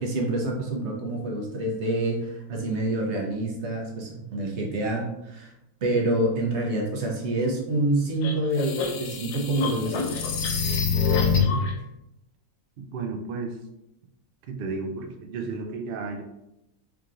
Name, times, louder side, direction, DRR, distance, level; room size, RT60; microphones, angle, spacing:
voice 1, 0.0-5.5 5.8-10.1, right 1 dB, 55° right, 0 dB, 1.1 m, -27 dB
sound 1, 8.2-11.7, left 5 dB, 80° left, 1.1 m, -25 dB
voice 2, 12.8-13.6 14.5-16.2, right 4 dB, 85° right, 3 dB, 0.5 m, -33 dB
4.8 x 3.0 x 2.5 m, 0.85 s
omnidirectional pair, 1.6 m